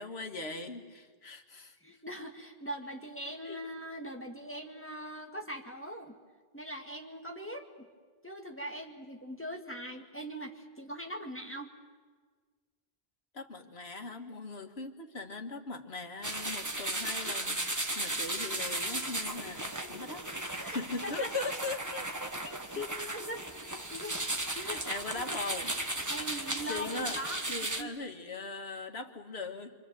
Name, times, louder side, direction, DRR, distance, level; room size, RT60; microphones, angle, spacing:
voice 1, 0.0-1.8 3.4-3.6 13.3-23.0 24.6-25.8 26.3-29.8, left 3 dB, 85° left, 5 dB, 1.9 m, -40 dB
voice 2, 1.8-6.2 6.5-7.7 8.2-11.7 20.5-21.3 23.3-23.4 23.9-24.2 24.5-24.8 25.1-25.2 26.1-27.4 27.8-27.9, equal, 10° left, 2 dB, 1.8 m, -41 dB
sound 1, 16.2-27.8, right 1 dB, 20° right, 1.2 m, -36 dB
27.0 x 26.0 x 7.5 m, 1.5 s
omnidirectional pair, 1.0 m